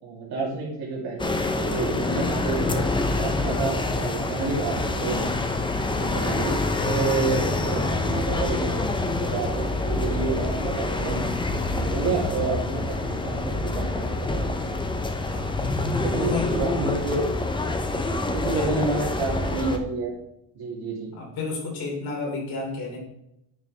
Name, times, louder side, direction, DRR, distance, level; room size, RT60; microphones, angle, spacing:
voice 1, 0.0-2.9 3.2-5.5 6.0-6.5 6.8-11.2 11.6-14.5 16.0-17.3 18.3-20.1 20.5-21.1, right 3 dB, 70° right, -2 dB, 2.9 m, -29 dB
sound 1, 1.2-19.8, left 2 dB, 10° left, 0.6 m, -26 dB
voice 2, 15.3-16.5 18.5-18.7 21.1-23.0, left 3 dB, 65° left, -1 dB, 3.1 m, -31 dB
9.5 x 6.4 x 3.3 m, 0.81 s
cardioid pair, 160°, 39 cm